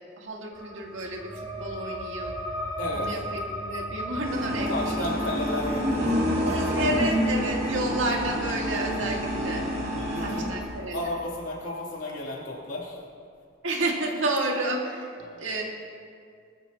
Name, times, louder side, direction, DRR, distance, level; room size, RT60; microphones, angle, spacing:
voice 1, 0.2-2.4 2.9-4.7 6.4-9.7 10.2-11.0 13.6-15.6, right 1 dB, 90° right, 0 dB, 2.1 m, -30 dB
sound 1, 0.5-11.7, equal, 25° right, 2.3 m, -38 dB
voice 2, 2.8-3.2 4.7-6.1 9.9-10.5 10.9-13.0 15.2-15.4, left 2 dB, 85° left, -4 dB, 3.2 m, -33 dB
sound 2, 4.2-10.8, equal, 50° right, 3.2 m, -28 dB
20.0 x 13.0 x 3.0 m, 2.3 s
head